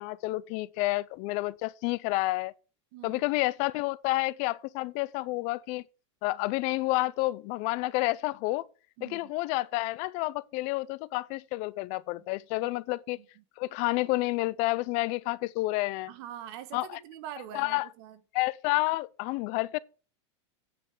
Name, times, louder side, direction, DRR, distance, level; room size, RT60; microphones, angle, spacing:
voice 1, 0.0-2.5 3.0-5.8 6.2-8.7 9.0-13.2 13.6-16.1 16.7-17.0 17.5-17.9 18.3-19.8, left 20 dB, 50° left, 0.5 m, -30 dB
voice 2, 2.9-3.2 9.0-9.3 12.6-12.7 13.2-13.3 16.1-18.2, right 11 dB, 60° right, 1.4 m, -44 dB
8.7 x 5.3 x 7.0 m
supercardioid pair, 125°, 16 cm